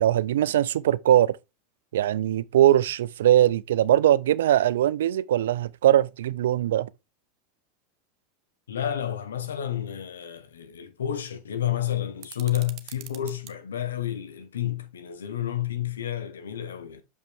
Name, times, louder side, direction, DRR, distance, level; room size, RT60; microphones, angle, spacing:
voice 1, 0.0-1.4 1.9-6.9, right 12 dB, 80° right, 0.4 m, -21 dB
voice 2, 8.7-17.0, left 11 dB, 85° left, 1.0 m, -30 dB
sound 1, 12.2-13.6, right 13 dB, 50° right, 0.9 m, -45 dB
6.5 x 5.3 x 3.5 m
hypercardioid pair, 95°, 0 cm